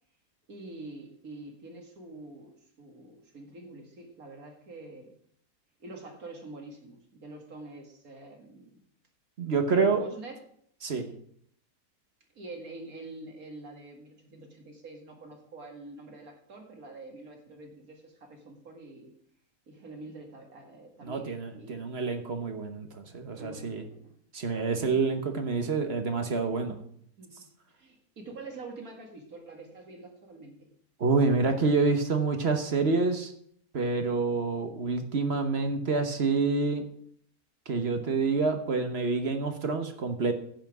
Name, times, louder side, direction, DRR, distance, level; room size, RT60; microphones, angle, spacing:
voice 1, 0.5-5.1 5.8-8.7 9.7-10.4 12.3-19.1 19.7-21.8 23.4-24.1 24.9-25.0 27.2-27.3 27.7-30.7, right 2 dB, 60° right, 2 dB, 2.4 m, -46 dB
voice 2, 9.4-10.0 10.8-11.1 21.0-23.8 24.3-26.8 31.0-33.3 33.7-36.8 37.7-40.3, right 4 dB, 45° right, 6 dB, 1.1 m, -27 dB
10.0 x 5.8 x 7.2 m, 0.65 s
omnidirectional pair, 1.7 m